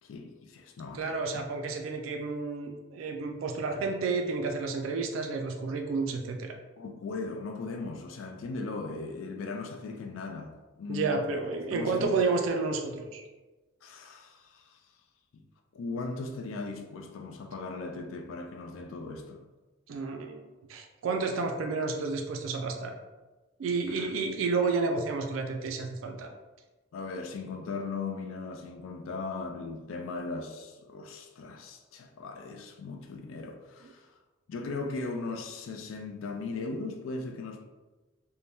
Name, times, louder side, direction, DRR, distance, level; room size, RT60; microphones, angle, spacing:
voice 1, 0.0-1.4 6.8-11.3 11.7-12.2 13.8-14.8 15.3-15.4 15.7-19.4 23.9-24.1 26.9-34.1 34.5-37.6, left 3 dB, 75° left, 0.4 m, -38 dB
voice 2, 0.9-6.6 10.9-13.2 19.9-20.4 20.7-22.9 23.6-26.3, right 4 dB, 75° right, 0.3 m, -31 dB
2.6 x 2.1 x 3.3 m
head